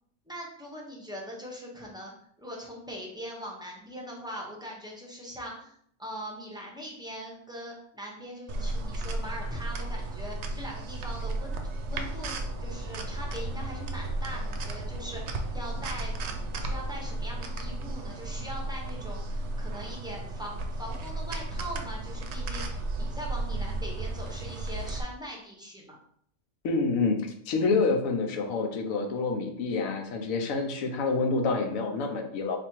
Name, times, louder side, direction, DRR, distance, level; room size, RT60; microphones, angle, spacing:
voice 1, 0.3-2.1 2.4-11.6 11.9-16.2 16.5-26.0, equal, 5° right, -2 dB, 0.5 m, -41 dB
sound 1, 8.5-25.0, right 2 dB, 65° right, 0.8 m, -34 dB
sound 2, 12.0-17.8, equal, 25° left, 0.8 m, -43 dB
voice 2, 26.6-27.2 27.5-32.6, left 4 dB, 90° left, 4 dB, 1.1 m, -27 dB
3.4 x 2.6 x 4.4 m, 0.66 s
omnidirectional pair, 1.4 m